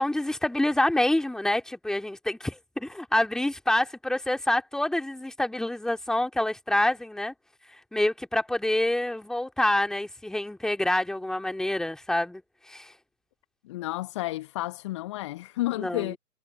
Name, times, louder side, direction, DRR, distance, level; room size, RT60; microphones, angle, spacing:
voice 1, 0.0-7.3 7.9-12.4 12.7-12.9 15.8-16.1, left 1 dB, ahead, 2.9 m, -27 dB
voice 2, 13.6-16.2, left 17 dB, 20° left, 1.3 m, -31 dB
figure-of-eight pair, 135°, 46 cm